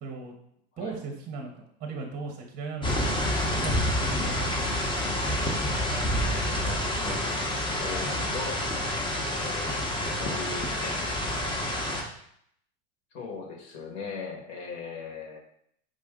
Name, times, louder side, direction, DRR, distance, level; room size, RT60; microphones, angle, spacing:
voice 1, 0.0-0.3 0.8-3.0 3.5-4.6, right 4 dB, 25° right, 2 dB, 0.8 m, -37 dB
sound 1, 2.8-12.0, left 1 dB, 15° left, 0.8 m, -28 dB
voice 2, 6.2-7.2 7.8-8.6 9.3-9.8 10.1-11.0 13.1-15.4, left 4 dB, 55° left, 1 dB, 1.4 m, -39 dB
5.1 x 2.6 x 3.6 m, 0.69 s
supercardioid pair, 115°, 34 cm